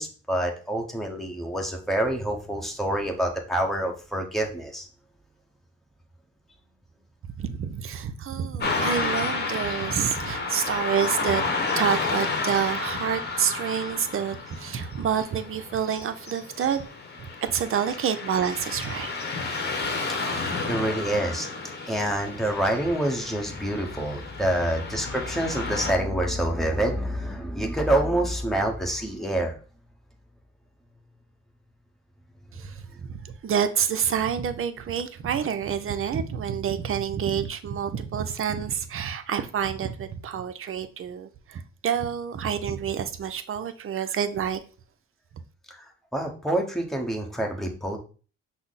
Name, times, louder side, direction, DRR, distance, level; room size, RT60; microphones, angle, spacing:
voice 1, 0.0-4.9 20.2-21.5 21.9-29.6 32.6-32.7 45.7-48.0, right 1 dB, ahead, 1 dB, 1.1 m, -27 dB
voice 2, 7.4-11.5 11.8-16.9 17.2-19.1 32.5-44.6, right 8 dB, 45° right, 10 dB, 0.6 m, -28 dB
Car passing by / Traffic noise roadway noise, 8.6-25.9, left 3 dB, 35° left, 1.0 m, -31 dB
5.7 x 2.1 x 4.1 m, 0.37 s
cardioid pair, 90°, 30 cm